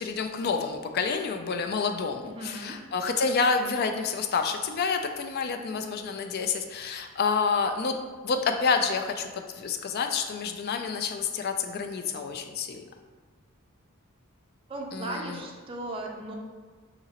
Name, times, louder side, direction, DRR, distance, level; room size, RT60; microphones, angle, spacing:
voice 1, 0.0-8.0 8.2-12.9 14.9-15.4, left 5 dB, 50° left, 5 dB, 0.3 m, -28 dB
voice 2, 2.2-2.8 14.7-16.3, right 2 dB, 25° right, 0 dB, 0.4 m, -37 dB
5.8 x 2.8 x 2.8 m, 1.5 s
head